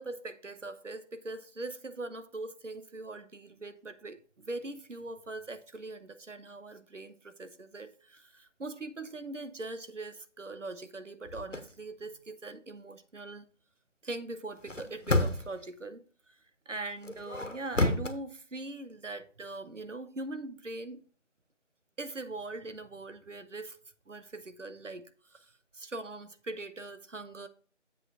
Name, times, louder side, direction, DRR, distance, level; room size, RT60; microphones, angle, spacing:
voice 1, 0.0-13.5 14.0-16.0 16.3-16.4 16.7-21.0 22.0-23.8 24.1-25.0 25.3-27.5, right 2 dB, 80° right, 1.1 m, -41 dB
sound 1, 11.3-11.7 14.5-15.6 17.0-18.1, left 2 dB, 90° left, 1.5 m, -30 dB
7.8 x 4.9 x 4.8 m
figure-of-eight pair, 170°, 36 cm